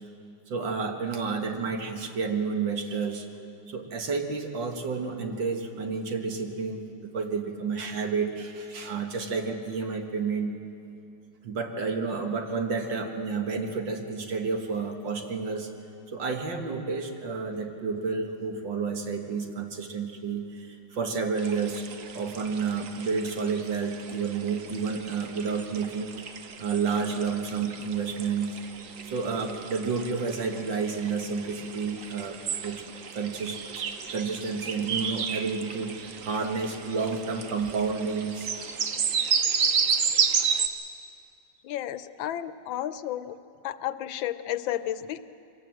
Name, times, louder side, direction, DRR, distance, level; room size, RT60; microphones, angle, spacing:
voice 1, 0.5-3.3 3.7-10.5 11.4-15.7 16.1-21.9 22.1-26.1 26.6-28.6 29.1-32.8 33.1-38.7, right 5 dB, 75° right, 4 dB, 2.4 m, -30 dB
sound 1, 21.4-40.7, right 6 dB, 50° right, 1.1 m, -32 dB
voice 2, 41.6-43.4 43.6-45.2, left 12 dB, 90° left, 13 dB, 1.5 m, -32 dB
24.0 x 18.0 x 7.7 m, 2.6 s
omnidirectional pair, 2.1 m